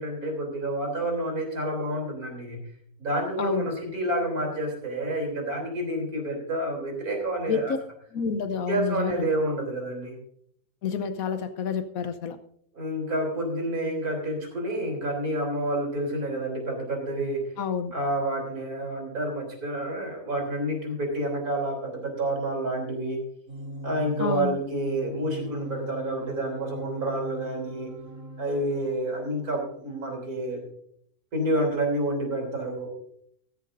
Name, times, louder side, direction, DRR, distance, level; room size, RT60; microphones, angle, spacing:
voice 1, 0.0-2.6 3.0-7.7 8.7-10.1 12.8-17.4 17.9-23.2 23.8-27.9 28.4-30.6 31.3-32.9, right 1 dB, 80° right, 2 dB, 3.9 m, -29 dB
voice 2, 3.4-3.7 7.5-7.6 8.1-9.3 10.8-12.4 17.6-17.9 24.2-24.6, left 6 dB, 75° left, 11 dB, 1.2 m, -29 dB
sound 1, 23.5-30.0, right 1 dB, 65° right, 3.6 m, -40 dB
15.0 x 15.0 x 2.6 m, 0.67 s
omnidirectional pair, 1.6 m